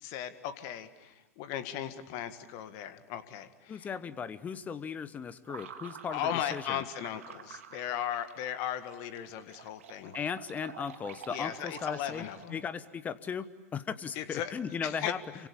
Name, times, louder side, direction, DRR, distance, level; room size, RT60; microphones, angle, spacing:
voice 1, 0.0-3.9 6.1-10.2 11.3-12.6 14.2-14.5 14.8-15.1, left 10 dB, 40° left, 11 dB, 1.9 m, -37 dB
voice 2, 3.7-6.8 10.1-12.2 12.5-15.2, left 6 dB, 20° left, 16 dB, 1.1 m, -37 dB
sound 1, 5.5-12.7, right 8 dB, 60° right, 2.3 m, -49 dB
28.0 x 25.0 x 8.5 m, 1.1 s
figure-of-eight pair, 95°, 8 cm